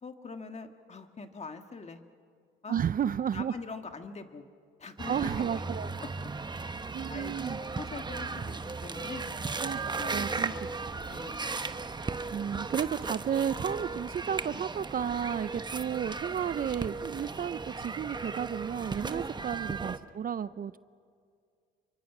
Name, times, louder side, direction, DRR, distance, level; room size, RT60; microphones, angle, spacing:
voice 1, 0.0-2.0 2.6-2.8 3.3-4.4 4.8-5.6 6.0-6.3 6.7-9.3 9.9-10.6 11.1-11.5, left 4 dB, 35° left, 6 dB, 1.8 m, -43 dB
voice 2, 2.7-3.5 5.1-5.9 6.9-7.6 9.6-10.5 12.3-20.8, right 8 dB, 45° right, 15 dB, 0.6 m, -32 dB
sound 1, 5.0-20.0, right 4 dB, 20° right, 0.9 m, -36 dB
29.0 x 24.0 x 6.1 m, 2.2 s
cardioid pair, 90°, 20 cm